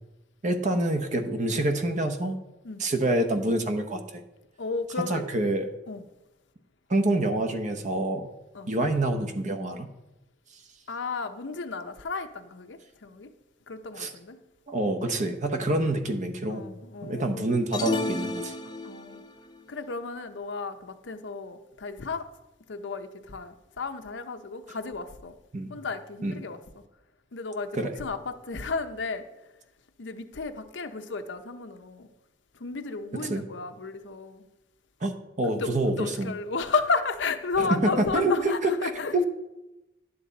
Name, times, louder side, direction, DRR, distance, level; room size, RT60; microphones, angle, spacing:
voice 1, 0.4-2.4 2.8-4.2 5.1-5.7 6.9-8.3 8.7-9.9 14.0-14.1 14.7-16.7 17.0-18.5 25.5-25.8 26.2-26.3 27.7-28.0 33.1-33.4 35.0-36.3 37.6-38.3 38.6-38.7 39.1-39.3, right 1 dB, 40° right, 0.9 m, -27 dB
voice 2, 4.6-5.2 5.9-6.0 8.5-8.8 10.9-13.3 13.7-14.4 15.7-15.9 16.5-17.6 18.8-19.2 19.7-22.3 22.7-25.3 25.7-26.6 27.3-29.3 30.0-32.1 32.5-34.5 35.4-39.1, left 4 dB, 85° left, 0.7 m, -33 dB
sound 1, 17.7-19.3, left 2 dB, 25° left, 0.6 m, -31 dB
11.0 x 8.0 x 4.0 m
head